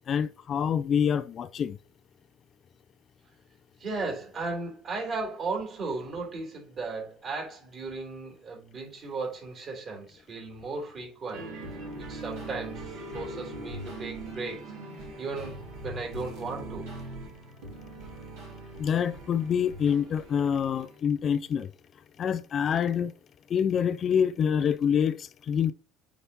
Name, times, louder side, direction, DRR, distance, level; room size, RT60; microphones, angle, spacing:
voice 1, 0.1-1.8 18.8-21.7 22.2-23.1 23.5-25.7, left 8 dB, 45° left, 0.3 m, -26 dB
voice 2, 3.8-11.5 12.0-14.6 15.2-16.9, right 3 dB, 45° right, 3.5 m, -36 dB
sound 1, 11.3-21.0, right 1 dB, 70° right, 2.3 m, -41 dB
8.5 x 4.2 x 2.8 m
figure-of-eight pair, 60°, 0 cm